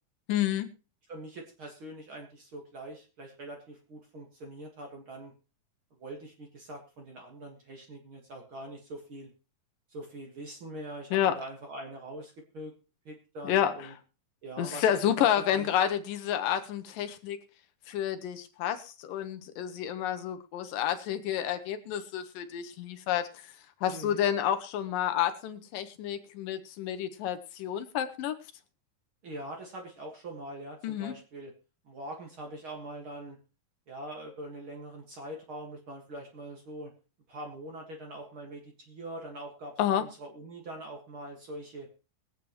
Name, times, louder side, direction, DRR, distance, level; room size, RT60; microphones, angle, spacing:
voice 1, 0.3-0.7 11.1-11.4 13.4-13.8 14.6-17.4 17.9-23.5 23.8-28.4 30.8-31.2 39.8-40.1, left 10 dB, 75° left, 8 dB, 2.4 m, -29 dB
voice 2, 1.1-5.3 5.9-9.3 9.9-12.7 13.1-14.0 14.4-14.9 15.2-15.7 23.8-24.2 29.2-31.5 31.8-33.4 33.9-36.9 37.3-41.9, right 1 dB, 45° right, 1 dB, 2.1 m, -43 dB
22.5 x 8.3 x 3.1 m, 0.32 s
omnidirectional pair, 4.1 m